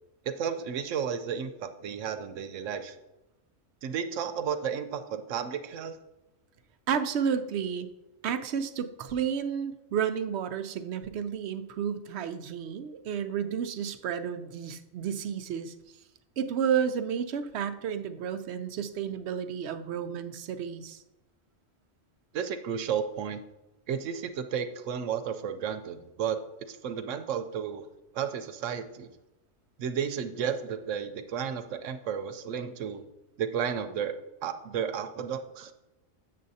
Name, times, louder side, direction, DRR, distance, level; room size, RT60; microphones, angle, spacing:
voice 1, 0.2-3.0 3.8-6.0 22.3-23.4 23.9-26.4 26.7-27.9 28.1-29.1 29.8-33.1 33.4-34.2 34.4-35.7, right 7 dB, 90° right, 9 dB, 1.0 m, -33 dB
voice 2, 6.9-7.9 8.2-15.7 16.4-21.0, right 7 dB, 65° right, 10 dB, 0.8 m, -31 dB
7.6 x 7.4 x 2.7 m, 0.96 s
omnidirectional pair, 1.3 m